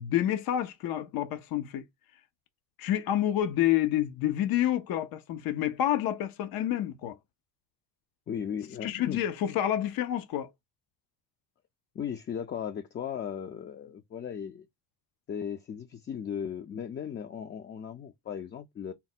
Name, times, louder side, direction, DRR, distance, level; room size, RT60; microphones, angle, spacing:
voice 1, 0.0-1.8 2.8-7.2 8.8-10.5, left 12 dB, 75° left, 0.6 m, -28 dB
voice 2, 8.3-9.2 11.9-14.7 15.3-18.9, left 8 dB, 30° left, 0.4 m, -37 dB
4.1 x 2.1 x 4.1 m
cardioid pair, 115°, 35 cm